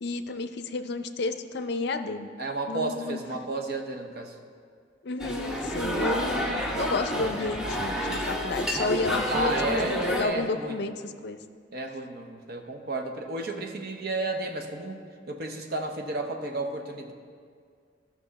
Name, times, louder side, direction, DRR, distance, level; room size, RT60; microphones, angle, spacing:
voice 1, 0.0-2.3 2.7-3.2 5.0-11.4, left 3 dB, 60° left, 9 dB, 0.5 m, -31 dB
voice 2, 2.4-4.3 9.3-10.8 11.7-15.0 15.3-17.1, right 2 dB, 55° right, 4 dB, 0.9 m, -32 dB
sound 1, 5.2-10.2, equal, 5° right, 0.8 m, -29 dB
13.5 x 6.2 x 4.1 m, 2.1 s
head